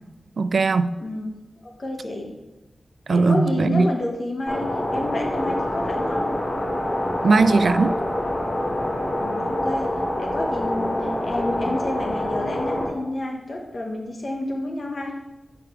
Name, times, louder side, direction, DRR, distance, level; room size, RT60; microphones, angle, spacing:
voice 1, 0.4-0.9 3.1-3.9 7.2-7.9, right 4 dB, 75° right, 0.3 m, -18 dB
voice 2, 1.0-2.3 3.1-6.3 9.2-9.9 10.2-15.2, left 1 dB, 55° left, 1.0 m, -29 dB
sound 1, 4.5-12.9, left 1 dB, 70° left, 1.8 m, -26 dB
8.0 x 4.8 x 3.5 m
wide cardioid pair, 75°, 0 cm